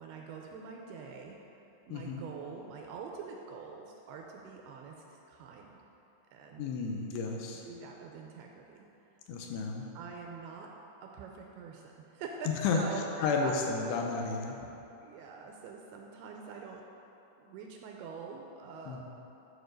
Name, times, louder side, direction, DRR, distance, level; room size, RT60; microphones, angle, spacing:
voice 1, 0.0-1.4 1.9-5.8 6.3-6.7 7.6-8.9 10.0-10.7 11.0-13.5 15.0-16.8 17.4-19.0, right 5 dB, 85° right, 1 dB, 2.4 m, -45 dB
voice 2, 1.9-2.2 6.6-7.6 9.3-9.9 12.5-12.8 13.2-14.6 18.9-19.0, left 4 dB, 80° left, 1 dB, 2.8 m, -32 dB
11.5 x 4.5 x 6.4 m, 3.0 s
omnidirectional pair, 5.0 m